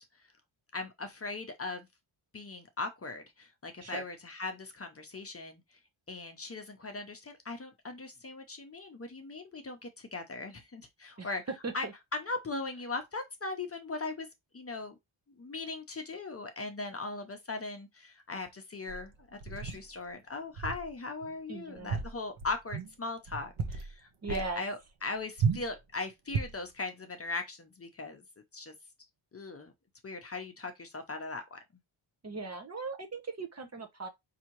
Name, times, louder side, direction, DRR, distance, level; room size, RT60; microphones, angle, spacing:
voice 1, 0.7-1.9 2.3-5.8 6.1-11.4 11.7-11.9 12.1-14.3 14.5-15.0 15.3-28.2 28.5-28.7 29.3-29.7 30.0-31.6, left 3 dB, 30° left, 0.7 m, -39 dB
sound 1, 18.9-19.9 20.6-20.9 21.2-21.3 21.8-22.9 23.3-23.9 24.3-24.5 25.4-25.7 26.3-26.7, right 5 dB, 75° right, 0.9 m, -34 dB
voice 2, 21.5-22.0 24.2-24.6 32.2-34.1, right 3 dB, 30° right, 0.7 m, -38 dB
4.9 x 2.8 x 2.9 m
wide cardioid pair, 155°, 48 cm